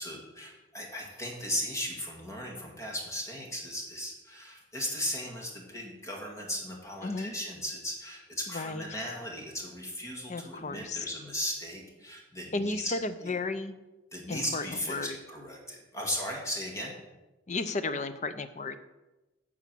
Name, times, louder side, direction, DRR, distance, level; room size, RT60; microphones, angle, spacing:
voice 1, 0.0-12.9 13.2-13.3 14.1-16.9, left 1 dB, 15° left, -1 dB, 1.9 m, -37 dB
voice 2, 7.0-7.3 8.5-8.8 10.3-11.1 12.5-13.8 14.3-15.2 17.5-18.8, left 3 dB, 40° left, 12 dB, 0.6 m, -33 dB
9.9 x 4.8 x 7.5 m, 1.1 s
head